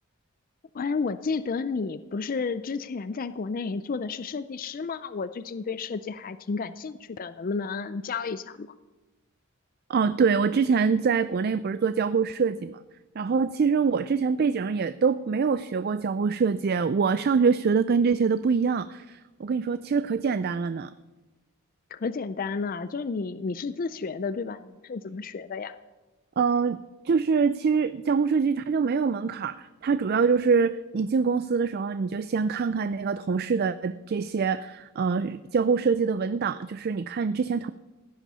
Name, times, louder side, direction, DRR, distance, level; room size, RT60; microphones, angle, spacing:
voice 1, 0.7-8.7 21.9-25.7, left 4 dB, 40° left, 13 dB, 0.4 m, -31 dB
voice 2, 9.9-12.8 13.2-20.9 26.4-26.8 27.0-37.7, right 5 dB, 45° right, 13 dB, 0.3 m, -24 dB
16.0 x 10.0 x 5.5 m, 1.2 s
head